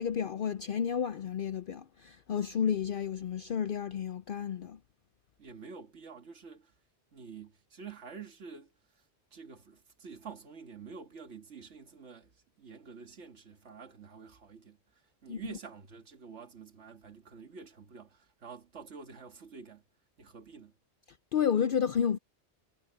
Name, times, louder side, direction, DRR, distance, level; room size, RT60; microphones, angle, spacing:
voice 1, 0.0-4.8 15.3-15.4 21.3-22.2, left 8 dB, 60° left, 0.7 m, -31 dB
voice 2, 5.4-6.7 7.1-8.7 9.3-12.3 12.6-14.8 15.2-19.8 20.2-20.7, right 5 dB, 90° right, 2.0 m, -48 dB
omnidirectional pair, 1.2 m